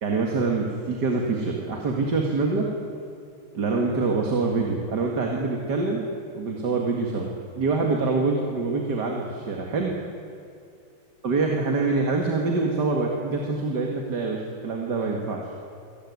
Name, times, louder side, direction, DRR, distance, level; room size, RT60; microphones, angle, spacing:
voice 1, 0.0-2.7 3.5-6.0 6.3-7.3 7.5-9.9 11.2-15.4, right 3 dB, 50° right, 0 dB, 2.5 m, -25 dB
25.5 x 18.0 x 9.6 m, 2.4 s
omnidirectional pair, 2.3 m